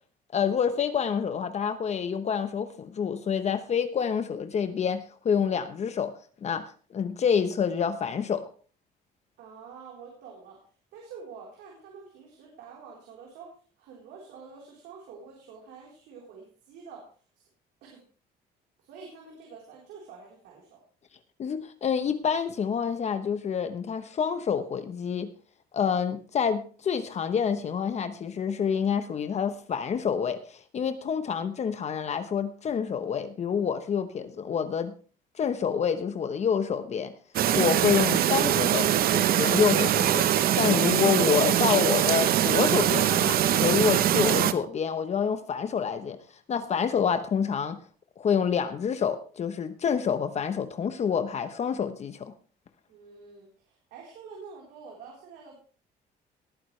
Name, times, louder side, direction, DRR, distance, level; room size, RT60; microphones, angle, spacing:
voice 1, 0.3-6.1 6.4-8.4 21.4-25.3 25.7-34.9 35.4-37.1 37.5-38.9 39.1-46.2 46.5-47.8 48.2-52.3, left 7 dB, 40° left, 10 dB, 1.0 m, -27 dB
voice 2, 9.4-10.6 10.9-13.5 13.8-17.0 17.4-17.5 17.8-18.0 18.8-20.8 52.9-55.6, right 5 dB, 85° right, -2 dB, 4.0 m, -47 dB
Chirp tweet, 37.3-44.5, right 11 dB, 60° right, 0.8 m, -23 dB
19.5 x 9.3 x 3.3 m, 0.39 s
cardioid pair, 110°, 17 cm